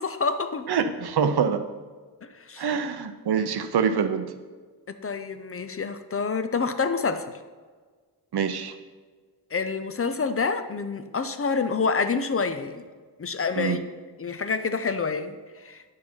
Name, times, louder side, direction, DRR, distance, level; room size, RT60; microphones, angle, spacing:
voice 1, 0.0-0.7 2.2-2.8 4.9-7.3 9.5-12.9 13.2-13.9 14.2-15.9, left 4 dB, 35° left, 9 dB, 0.5 m, -28 dB
voice 2, 0.7-1.6 2.6-4.3 8.3-8.7 13.6-13.8, right 6 dB, 70° right, 9 dB, 0.7 m, -25 dB
9.5 x 6.4 x 4.4 m, 1.5 s
wide cardioid pair, 110°, 40 cm